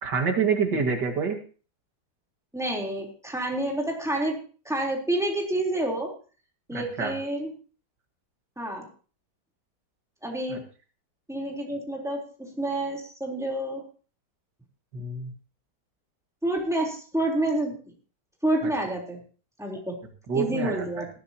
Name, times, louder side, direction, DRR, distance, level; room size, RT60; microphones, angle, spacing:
voice 1, 0.0-1.4 6.7-7.1 10.5-10.6 14.9-15.3 20.3-21.0, right 5 dB, 85° right, 3 dB, 2.6 m, -27 dB
voice 2, 2.5-4.4 4.7-6.1 6.7-7.5 8.6-8.9 10.2-10.6 11.3-13.8 16.4-17.8 18.4-19.2 19.6-20.0 20.3-21.1, right 1 dB, ahead, -1 dB, 3.6 m, -28 dB
18.5 x 13.0 x 2.9 m, 0.38 s
omnidirectional pair, 1.8 m